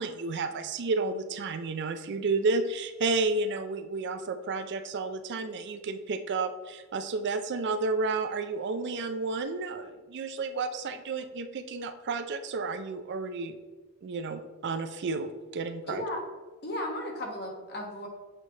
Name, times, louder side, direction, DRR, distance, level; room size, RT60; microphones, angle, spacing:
voice 1, 0.0-13.6 14.0-16.0, right 3 dB, 55° right, 9 dB, 0.4 m, -31 dB
voice 2, 15.9-16.2 16.6-18.1, left 1 dB, 50° left, 0 dB, 1.2 m, -35 dB
7.5 x 3.2 x 3.9 m, 1.2 s
head